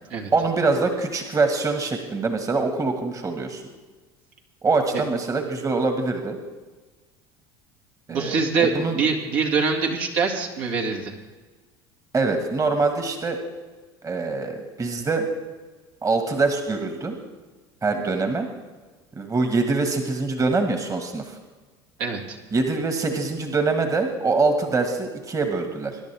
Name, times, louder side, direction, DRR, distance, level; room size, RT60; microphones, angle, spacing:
voice 1, 0.3-3.6 4.6-6.4 8.1-9.0 12.1-13.4 14.0-15.3 16.0-17.2 17.8-18.5 19.1-21.4 22.5-26.0, right 3 dB, 25° right, 5 dB, 1.7 m, -24 dB
voice 2, 8.1-11.1 22.0-22.4, right 5 dB, 65° right, 0 dB, 2.3 m, -24 dB
22.0 x 10.5 x 3.5 m, 1.3 s
hypercardioid pair, 80°, 13 cm